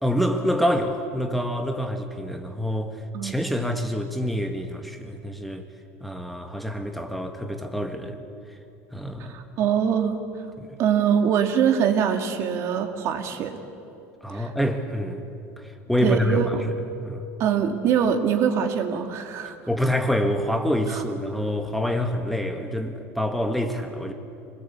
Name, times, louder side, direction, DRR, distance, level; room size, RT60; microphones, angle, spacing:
voice 1, 0.0-5.7 6.0-8.2 8.9-9.4 10.6-10.8 14.2-15.2 15.6-17.2 19.7-24.1, equal, ahead, 4 dB, 1.6 m, -26 dB
voice 2, 9.2-10.2 10.8-13.6 14.3-14.5 16.0-16.6 17.4-19.6 20.9-21.0, right 8 dB, 50° right, 5 dB, 2.4 m, -23 dB
26.0 x 20.5 x 8.4 m, 2.6 s
cardioid pair, 140°, 6 cm